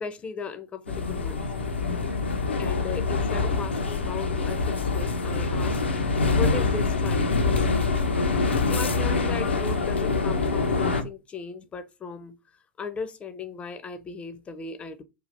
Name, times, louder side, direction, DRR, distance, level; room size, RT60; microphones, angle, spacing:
voice 1, 0.0-1.5 2.6-8.0 8.6-12.4 12.8-15.0, left 5 dB, 20° left, 0.4 m, -37 dB
sound 1, 0.9-11.0, left 3 dB, 75° left, 0.4 m, -25 dB
3.2 x 2.4 x 2.5 m
figure-of-eight pair, 90°, 6 cm